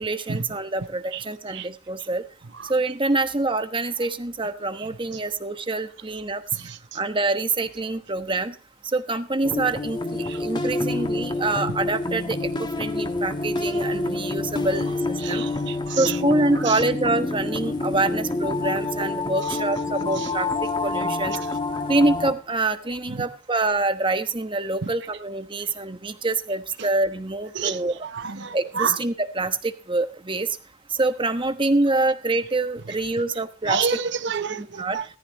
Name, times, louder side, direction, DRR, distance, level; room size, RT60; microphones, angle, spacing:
voice 1, 0.0-2.2 2.7-6.4 6.9-8.5 8.9-12.5 12.8-15.5 16.0-20.5 20.8-21.3 21.9-28.1 28.5-30.5 30.9-33.9 34.6-35.0, right 2 dB, 25° right, 1.2 m, -25 dB
sound 1, 9.4-22.3, left 2 dB, 25° left, 1.4 m, -27 dB
voice 2, 15.2-16.1 27.6-27.8 28.1-29.0 33.7-35.0, right 6 dB, 60° right, 0.8 m, -28 dB
17.5 x 14.0 x 3.2 m
head